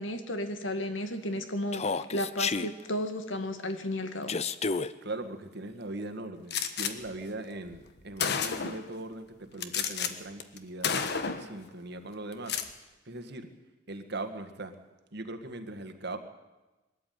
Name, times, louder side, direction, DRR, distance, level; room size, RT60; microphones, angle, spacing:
voice 1, 0.0-4.3, left 1 dB, 75° left, 8 dB, 2.0 m, -33 dB
Human voice, 1.7-2.7 4.3-4.9, left 4 dB, 35° left, 0.6 m, -30 dB
voice 2, 5.0-10.9 11.3-12.6 13.1-13.5 13.9-14.8 15.1-16.2, right 2 dB, 60° right, 8 dB, 1.8 m, -40 dB
Gunshot gunfire, 6.5-6.9 7.8-7.9 8.2-8.9 9.6-10.1 10.4-10.6 10.8-11.5 12.3-12.7, left 6 dB, 60° left, 1.4 m, -30 dB
22.0 x 13.5 x 9.4 m, 1.1 s
head